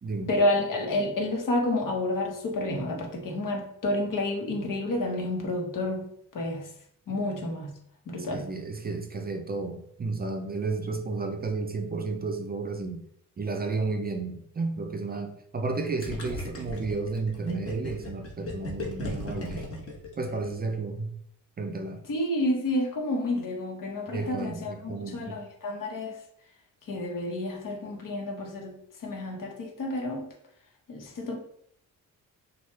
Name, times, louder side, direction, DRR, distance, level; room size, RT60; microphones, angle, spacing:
voice 1, 0.3-6.1 6.3-6.7 7.1-7.7 8.1-8.5 22.1-26.2 26.9-28.7 29.0-30.2 30.9-31.4, left 1 dB, 65° left, 1.3 m, -29 dB
voice 2, 8.1-13.0 13.4-19.7 20.2-21.1 21.6-22.1 24.1-25.4, right 3 dB, 25° right, 0.5 m, -32 dB
Gurgling, 16.0-20.7, left 1 dB, 40° left, 1.5 m, -37 dB
6.3 x 2.4 x 3.3 m
cardioid pair, 120°, 35 cm